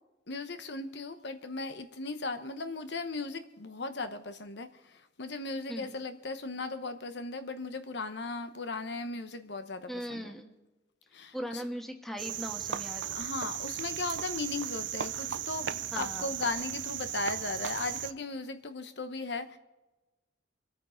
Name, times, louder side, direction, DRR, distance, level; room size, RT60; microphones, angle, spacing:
voice 1, 0.3-10.3 11.1-11.6 13.1-19.6, left 3 dB, 65° left, 9 dB, 1.0 m, -37 dB
voice 2, 9.9-10.5 11.3-13.1 15.9-16.4, equal, ahead, 4 dB, 1.5 m, -39 dB
Cricket, 12.2-18.1, right 10 dB, 70° right, 0.6 m, -36 dB
26.5 x 9.3 x 3.9 m, 1.1 s
head